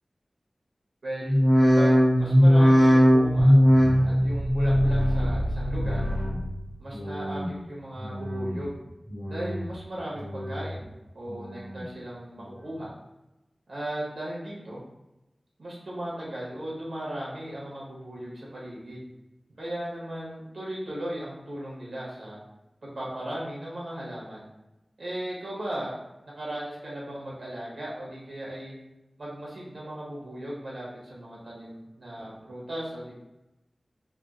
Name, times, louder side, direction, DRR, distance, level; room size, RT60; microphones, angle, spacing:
voice 1, 1.0-3.6 4.0-6.1 6.8-8.8 9.3-12.9 13.7-14.8 15.6-19.1 19.6-22.4 22.8-24.4 25.0-26.0 26.2-28.7 29.2-33.2, right 1 dB, 85° right, -5 dB, 1.2 m, -37 dB
sound 1, 1.2-6.6 6.9-7.5 8.0-8.6 9.1-9.7 10.2-10.8 11.3-11.9 12.4-12.5, equal, 85° left, 1.1 m, -21 dB
3.4 x 2.4 x 2.5 m, 0.98 s
wide cardioid pair, 60°, 0 cm